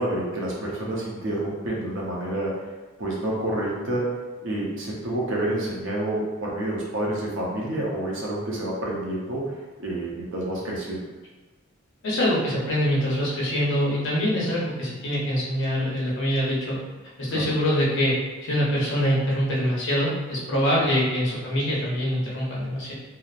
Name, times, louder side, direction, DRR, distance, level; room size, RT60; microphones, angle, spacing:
voice 1, 0.0-2.6 3.0-4.2 4.4-9.5 9.8-11.0 17.3-17.5, right 1 dB, 65° right, -4 dB, 0.7 m, -28 dB
voice 2, 12.0-16.8 17.2-18.2 18.4-22.9, equal, 65° left, -5 dB, 0.8 m, -24 dB
2.8 x 2.0 x 2.4 m, 1.2 s
head